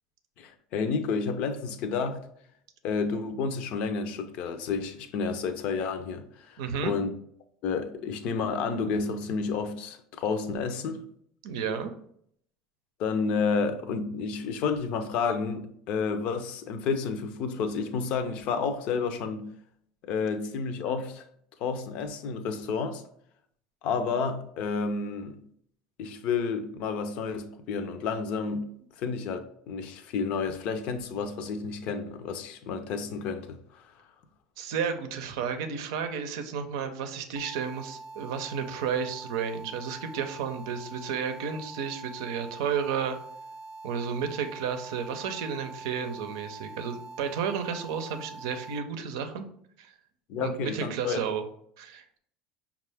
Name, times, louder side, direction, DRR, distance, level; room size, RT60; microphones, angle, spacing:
voice 1, 0.4-2.2 2.8-7.1 7.6-11.0 13.0-19.5 20.0-21.3 21.6-23.0 23.8-25.4 26.0-28.7 29.0-29.4 29.7-33.9 50.3-51.3, left 5 dB, 60° left, 0.5 m, -30 dB
voice 2, 6.6-6.9 11.4-11.9 34.6-43.2 43.8-49.4 49.8-49.9 50.4-51.4 51.8-52.0, right 7 dB, 80° right, 0.5 m, -32 dB
sound 1, 37.4-48.8, right 3 dB, 35° right, 0.6 m, -44 dB
5.3 x 2.4 x 3.4 m
supercardioid pair, 100°, 2 cm